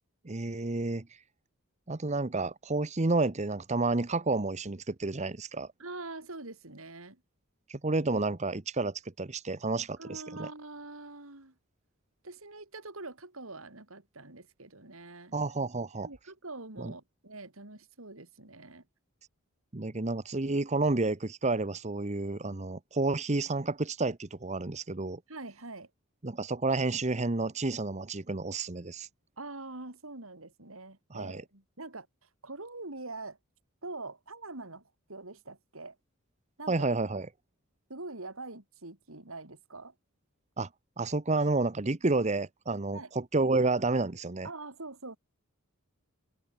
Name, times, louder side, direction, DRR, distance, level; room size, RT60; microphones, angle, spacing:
voice 1, 0.2-1.0 1.9-5.7 7.7-10.5 15.3-16.1 16.8-16.9 19.7-25.2 26.2-29.1 31.1-31.4 36.7-37.3 40.6-40.7 41.0-44.5, right 3 dB, 35° right, 0.9 m, -30 dB
voice 2, 5.8-7.2 10.0-11.5 12.2-15.4 16.0-18.9 25.3-25.9 29.4-33.4 33.8-36.0 36.6-36.9 37.9-39.9 42.9-43.1 44.4-45.2, right 2 dB, 75° right, 3.9 m, -44 dB
open air
head